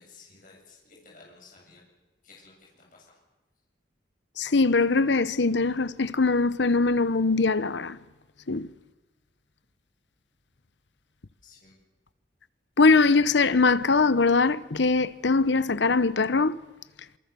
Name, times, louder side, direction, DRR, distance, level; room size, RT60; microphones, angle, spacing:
voice 1, 0.0-1.8 2.2-3.2 11.4-11.8, left 4 dB, 45° left, 7.7 m, -54 dB
voice 2, 4.4-8.0 8.5-8.7 12.8-16.6, left 3 dB, 75° left, 1.0 m, -22 dB
27.5 x 24.5 x 7.0 m
head